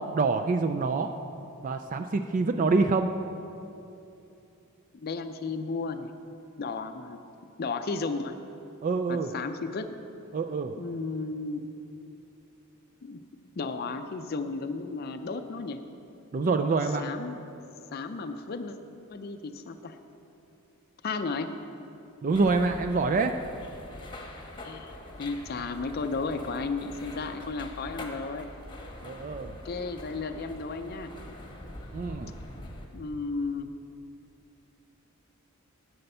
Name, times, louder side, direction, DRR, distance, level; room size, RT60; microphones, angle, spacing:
voice 1, 0.1-1.1 1.6-3.1 8.8-9.3 10.3-10.7 16.3-17.1 22.2-23.3 29.0-29.6 31.9-32.3, right 3 dB, 35° right, 6 dB, 0.3 m, -26 dB
voice 2, 4.9-6.1 6.6-7.2 7.6-8.4 9.1-10.0 10.8-11.6 13.0-13.2 13.6-15.8 17.0-17.3 17.9-18.8 19.1-20.0 21.0-21.6 24.6-28.5 29.6-31.1 32.9-33.7, left 4 dB, 45° left, 7 dB, 0.5 m, -34 dB
sound 1, 22.3-32.9, left 1 dB, 20° left, 1.0 m, -44 dB
11.0 x 7.9 x 5.5 m, 2.7 s
head